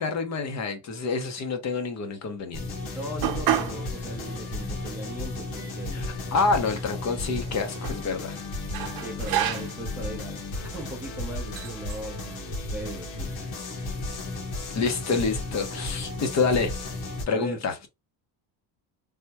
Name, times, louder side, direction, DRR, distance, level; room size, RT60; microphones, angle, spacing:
voice 1, 0.0-2.7 5.9-8.4 14.7-16.8 17.3-17.7, left 4 dB, 40° left, 0.6 m, -27 dB
sound 1, 2.5-17.2, left 2 dB, 85° left, 1.3 m, -34 dB
voice 2, 2.9-6.0 6.3-6.4 9.0-13.3 17.3-17.6, right 1 dB, 5° right, 0.5 m, -38 dB
sound 2, 3.2-3.8 4.2-4.3 5.1-5.2 5.5-6.5 7.4-8.0 8.7-9.9 10.6-10.9 11.6-12.0, right 11 dB, 50° right, 0.7 m, -30 dB
3.4 x 2.1 x 2.8 m
cardioid pair, 165°, 45 cm